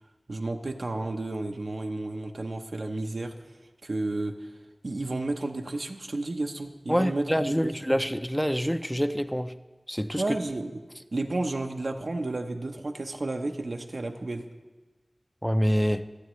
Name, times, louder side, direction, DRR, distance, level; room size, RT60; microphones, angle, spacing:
voice 1, 0.3-3.3 3.8-4.5 4.8-7.7 10.2-10.8 11.1-14.4, right 2 dB, 85° right, 0.8 m, -32 dB
voice 2, 6.9-9.6 9.9-10.2 15.4-16.0, equal, ahead, 0.5 m, -26 dB
24.5 x 8.8 x 3.2 m
wide cardioid pair, 45°, 0 cm